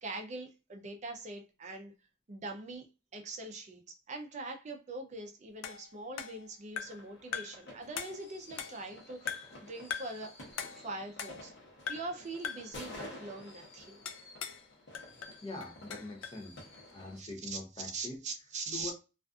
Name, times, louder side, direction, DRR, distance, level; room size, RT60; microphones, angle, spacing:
voice 1, 0.0-1.9 2.3-2.9 3.1-10.4 10.7-11.5 11.9-13.9 17.1-18.9, right 3 dB, 35° right, 0.4 m, -42 dB
sound 1, 5.6-7.1 7.3-7.7 8.0-8.9 9.3-9.6 9.9-10.2 10.6-11.6 11.9-12.2 12.4-12.8 14.1-14.7 14.9-16.4, left 7 dB, 90° left, 0.4 m, -41 dB
sound 2, 6.8-17.2, left 1 dB, 60° left, 0.9 m, -51 dB
voice 2, 15.4-16.6 16.9-18.2 18.7-18.9, left 2 dB, 25° left, 0.6 m, -43 dB
2.4 x 2.4 x 2.3 m
head